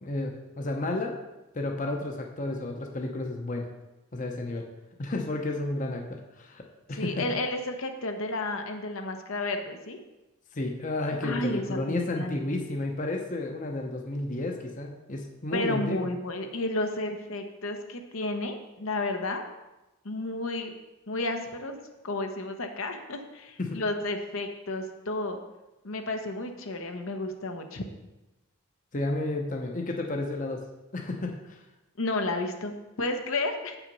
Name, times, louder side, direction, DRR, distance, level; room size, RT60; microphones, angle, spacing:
voice 1, 0.0-1.1 1.5-3.7 4.1-4.7 5.0-6.6 6.9-7.3 10.5-16.1 23.6-23.8 28.9-30.6 30.9-31.6, left 2 dB, 35° left, 2 dB, 0.8 m, -32 dB
voice 2, 7.0-10.0 11.2-12.4 15.5-19.4 20.0-20.7 21.1-21.8 22.0-25.4 25.8-27.8 32.0-33.8, left 2 dB, 70° left, 5 dB, 0.9 m, -32 dB
8.1 x 5.9 x 5.3 m, 1.0 s
head